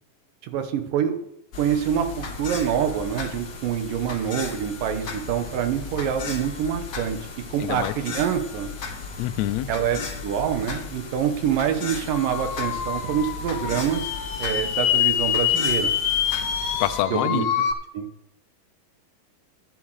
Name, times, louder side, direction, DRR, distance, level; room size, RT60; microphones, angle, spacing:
voice 1, 0.4-1.2 1.6-7.2 7.5-8.7 9.7-14.1 14.4-15.9 17.1-17.4 17.9-18.1, right 9 dB, 75° right, 8 dB, 2.7 m, -26 dB
sound 1, 1.5-17.0, left 5 dB, 45° left, 1.5 m, -36 dB
voice 2, 7.6-7.9 9.2-9.7 16.8-17.5, left 14 dB, 85° left, 9 dB, 1.6 m, -26 dB
sound 2, 12.1-17.7, left 9 dB, 65° left, 1.9 m, -25 dB
11.5 x 10.0 x 4.8 m, 0.75 s
omnidirectional pair, 3.9 m